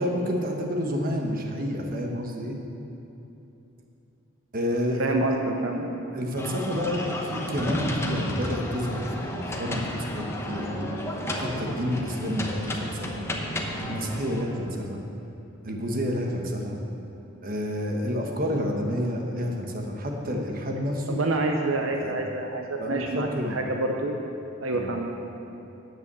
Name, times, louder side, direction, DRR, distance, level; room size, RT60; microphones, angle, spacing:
voice 1, 0.0-2.6 4.5-5.2 6.1-10.9 11.3-13.2 13.8-15.0 15.6-16.8 17.4-21.2 21.9-22.2 22.8-23.6 24.7-24.9, equal, 45° right, 2 dB, 1.2 m, -29 dB
voice 2, 5.0-6.0 21.1-24.2 24.6-25.3, right 2 dB, 75° right, 2 dB, 0.8 m, -28 dB
sound 1, 6.4-14.4, left 1 dB, 15° left, 0.9 m, -32 dB
9.8 x 8.1 x 7.0 m, 2.9 s
head